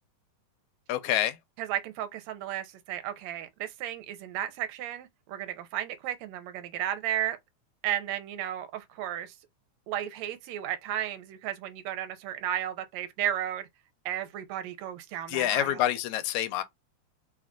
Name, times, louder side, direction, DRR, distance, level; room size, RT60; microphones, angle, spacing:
voice 1, 0.9-1.4 15.3-16.6, left 12 dB, 85° left, 2.0 m, -27 dB
voice 2, 1.6-7.4 7.8-9.4 9.9-13.7 14.1-15.9, right 11 dB, 75° right, 1.8 m, -34 dB
4.4 x 2.4 x 3.6 m
omnidirectional pair, 3.3 m